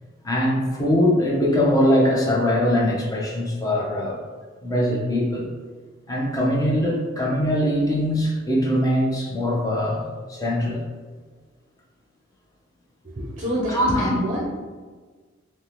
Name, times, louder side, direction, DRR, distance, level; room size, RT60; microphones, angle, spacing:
voice 1, 0.2-4.2 4.6-5.5 6.1-10.0 10.3-10.8 13.7-14.1, equal, 20° left, -3 dB, 0.5 m, -22 dB
voice 2, 13.0-14.4, equal, 35° right, -4 dB, 0.5 m, -27 dB
2.7 x 2.0 x 3.2 m, 1.4 s
head